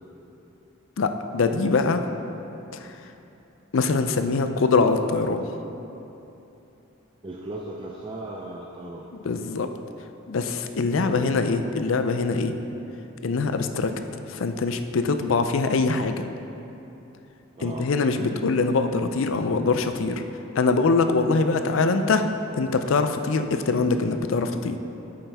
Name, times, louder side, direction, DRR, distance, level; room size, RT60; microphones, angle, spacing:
voice 1, 1.0-2.0 2.7-3.0 3.7-5.4 9.2-9.7 10.3-12.5 13.2-13.9 14.3-16.2 17.6-20.2 20.6-22.2 22.5-24.8, left 4 dB, 70° left, 8 dB, 0.5 m, -23 dB
voice 2, 7.2-9.1 11.0-11.3 17.6-17.8, right 2 dB, 25° right, -2 dB, 0.4 m, -36 dB
8.7 x 7.6 x 3.5 m, 2.9 s
head